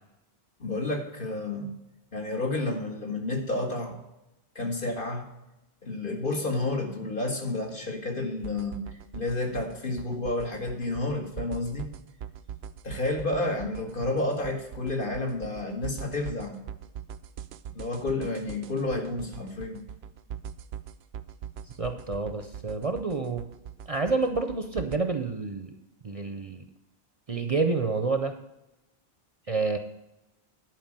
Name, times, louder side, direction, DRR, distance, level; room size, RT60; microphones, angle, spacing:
voice 1, 0.6-1.7 2.1-4.0 4.6-5.3 5.8-11.9 12.8-16.6 17.7-19.8, left 2 dB, 55° left, 1 dB, 1.9 m, -30 dB
sound 1, 8.4-25.0, right 9 dB, 80° right, 0.8 m, -42 dB
voice 2, 21.8-23.4 23.9-25.7 26.0-26.6 27.3-28.3 29.5-29.8, right 4 dB, 40° right, 7 dB, 0.7 m, -28 dB
11.0 x 4.8 x 7.4 m, 0.92 s
omnidirectional pair, 1.0 m